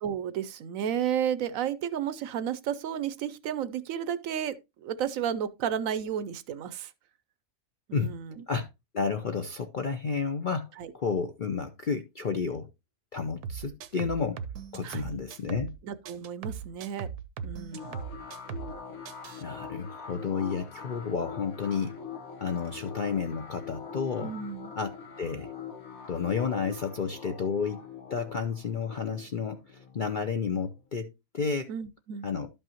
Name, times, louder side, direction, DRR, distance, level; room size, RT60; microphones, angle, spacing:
voice 1, 0.0-6.9 7.9-8.4 10.8-10.9 14.8-15.2 15.9-17.1 17.4-18.0 24.2-24.7 31.7-32.3, right 9 dB, 70° right, 0.9 m, -32 dB
voice 2, 8.9-12.7 13.1-14.4 14.7-15.7 19.4-22.0 22.4-24.4 24.8-24.9 25.2-25.5 26.1-31.7 32.2-32.5, left 5 dB, 55° left, 0.5 m, -31 dB
sound 1, 13.4-15.8 16.1-18.8 19.1-19.4, right 6 dB, 85° right, 1.3 m, -38 dB
sound 2, 17.7-30.9, left 6 dB, 70° left, 1.8 m, -43 dB
12.0 x 5.5 x 2.9 m
omnidirectional pair, 1.6 m